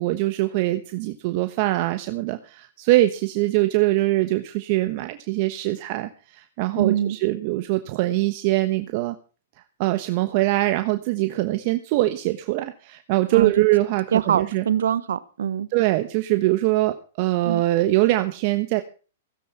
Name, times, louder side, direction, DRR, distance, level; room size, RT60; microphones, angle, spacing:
voice 1, 0.0-9.1 9.8-14.6 15.7-18.8, right 17 dB, 50° right, 9 dB, 1.1 m, -23 dB
voice 2, 6.8-7.2 13.3-13.6 14.1-15.7 17.4-17.6, right 9 dB, 75° right, 17 dB, 1.0 m, -23 dB
16.0 x 9.9 x 5.6 m, 0.37 s
hypercardioid pair, 120°, 0 cm